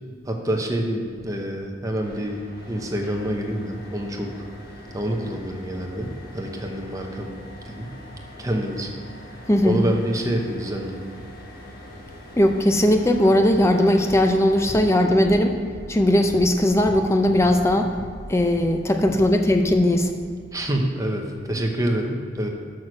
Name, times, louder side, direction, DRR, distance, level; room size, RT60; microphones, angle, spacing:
voice 1, 0.3-2.4 2.7-4.4 4.9-7.4 7.6-7.9 8.4-8.9 9.6-11.0 20.5-22.5, right 1 dB, 20° right, 2 dB, 0.9 m, -27 dB
sound 1, 2.0-14.8, left 1 dB, 55° left, 1.6 m, -43 dB
voice 2, 12.4-15.5 15.9-17.9 18.3-20.1, left 1 dB, 15° left, 5 dB, 0.6 m, -18 dB
6.4 x 6.3 x 6.2 m, 2.2 s
head